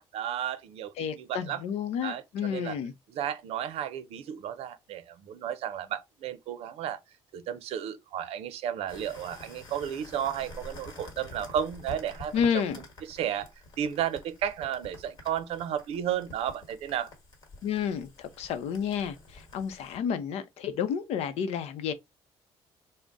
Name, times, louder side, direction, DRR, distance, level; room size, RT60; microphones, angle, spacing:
voice 1, 0.0-1.6 2.0-2.8 3.1-7.0 7.3-12.6 13.0-13.5 13.8-17.1, right 9 dB, 75° right, 0.5 m, -33 dB
voice 2, 1.0-2.9 12.3-12.8 17.6-21.9, left 7 dB, 85° left, 0.6 m, -30 dB
sound 1, 8.9-20.0, left 1 dB, 45° left, 1.3 m, -48 dB
3.9 x 2.1 x 3.4 m
cardioid pair, 175°, 10 cm